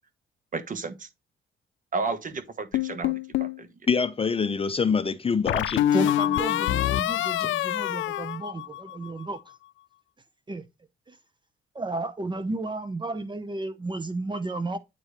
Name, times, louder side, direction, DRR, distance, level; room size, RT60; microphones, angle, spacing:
voice 1, 0.5-1.1 1.9-3.7, right 4 dB, 40° right, 1.2 m, -32 dB
sound 1, 2.7-3.6 5.5-9.1, left 12 dB, 75° left, 0.5 m, -26 dB
voice 2, 3.9-5.8 7.4-7.5, left 5 dB, 30° left, 0.7 m, -25 dB
voice 3, 5.9-9.4 10.5-10.6 11.7-14.8, right 2 dB, 25° right, 0.8 m, -32 dB
8.5 x 4.7 x 3.3 m
cardioid pair, 90°, 20 cm